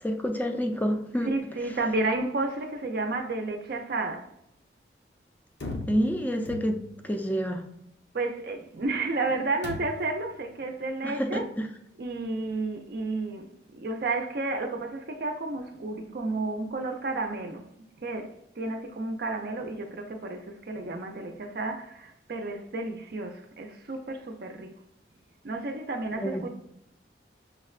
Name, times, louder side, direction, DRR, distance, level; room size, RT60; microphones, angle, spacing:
voice 1, 0.0-1.4 5.9-7.7 11.0-11.7 26.2-26.4, equal, 10° left, 0.4 m, -28 dB
voice 2, 1.2-4.3 8.1-11.4 12.0-17.7 18.0-24.8 25.4-26.5, right 2 dB, 60° right, 0.5 m, -32 dB
sound 1, 5.6-7.1 9.6-10.2, left 2 dB, 75° left, 0.7 m, -39 dB
6.3 x 2.1 x 2.4 m
head